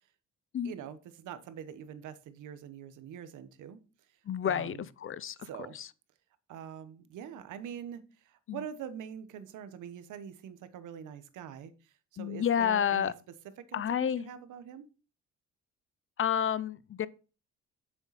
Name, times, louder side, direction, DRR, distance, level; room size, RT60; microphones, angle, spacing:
voice 1, 0.6-3.8 4.4-4.8 5.4-5.8 6.5-13.1 13.6-14.9, right 9 dB, 85° right, 1.2 m, -44 dB
voice 2, 4.2-5.9 8.5-8.6 12.2-13.1 13.7-14.3 16.2-17.1, left 9 dB, 45° left, 0.6 m, -30 dB
7.2 x 7.0 x 4.1 m
cardioid pair, 90°, 30 cm